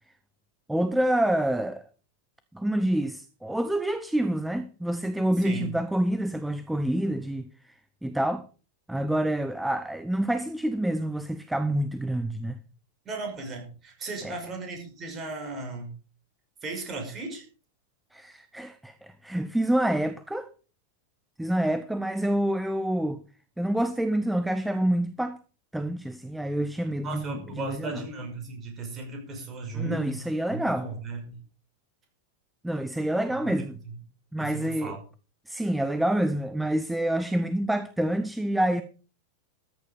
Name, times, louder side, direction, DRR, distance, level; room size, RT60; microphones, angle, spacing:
voice 1, 0.7-1.8 2.5-7.5 8.0-8.4 8.9-12.6 14.2-14.3 18.1-20.5 21.4-23.2 23.6-25.4 25.7-28.0 29.7-30.9 32.6-33.8 34.3-35.0 35.5-38.8, right 1 dB, 5° right, 0.8 m, -27 dB
voice 2, 5.4-5.8 13.0-15.9 16.6-17.5 27.0-30.2 30.5-31.4 33.3-33.4 33.8-33.9 34.4-35.0, right 3 dB, 25° right, 5.8 m, -36 dB
14.0 x 9.7 x 5.2 m
figure-of-eight pair, 90°, 0 cm